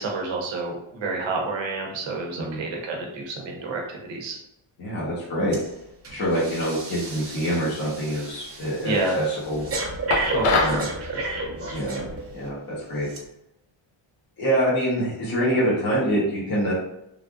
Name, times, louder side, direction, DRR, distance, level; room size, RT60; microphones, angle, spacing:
voice 1, 0.0-4.4 8.8-9.2 10.3-11.2, right 3 dB, 65° right, 0 dB, 0.9 m, -29 dB
voice 2, 4.8-5.6 6.1-9.7 10.6-10.9 11.7-12.0 12.3-12.6 12.9-13.1 14.4-16.7, right 1 dB, 45° left, -8 dB, 1.1 m, -25 dB
Breathing, 5.5-5.7 6.0-12.5 13.1-13.2, right 2 dB, 30° right, 0.8 m, -32 dB
sound 1, 10.1-10.8, left 3 dB, 85° left, 0.7 m, -22 dB
3.3 x 2.4 x 2.4 m, 0.83 s
cardioid pair, 120°, 50 cm